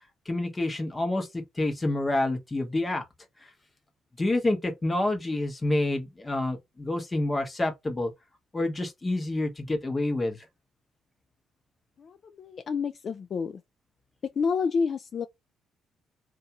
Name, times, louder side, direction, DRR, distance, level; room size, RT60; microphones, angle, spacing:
voice 1, 0.3-3.0 4.2-8.1 8.5-10.4, left 2 dB, 20° left, 0.9 m, -28 dB
voice 2, 12.0-13.6 14.2-15.3, left 5 dB, 50° left, 0.3 m, -29 dB
2.6 x 2.3 x 2.8 m
cardioid pair, 90°, 0 cm